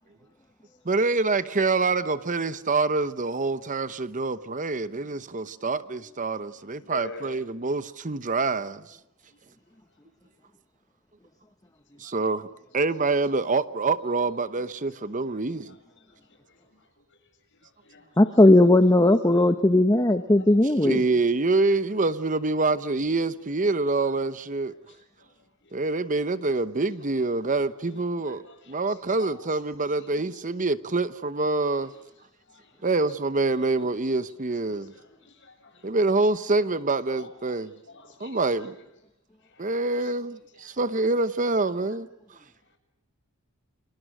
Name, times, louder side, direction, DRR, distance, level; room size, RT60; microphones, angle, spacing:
voice 1, 0.8-9.0 12.0-12.5 12.7-15.7 20.8-24.7 25.7-31.9 32.8-34.9 35.8-37.7 38.2-38.7 39.6-42.4, right 3 dB, 35° right, 0.9 m, -26 dB
voice 2, 6.8-7.3 12.0-12.1 15.2-15.4 17.8-18.0 25.6-25.7 28.2-28.6 28.9-29.3 30.0-30.1 32.5-32.7 35.2-35.9 37.2-37.3 37.9-38.7 39.5-39.8, left 3 dB, 55° left, 7.1 m, -45 dB
voice 3, 18.2-21.0, left 1 dB, 15° left, 0.9 m, -17 dB
29.5 x 26.5 x 6.2 m
head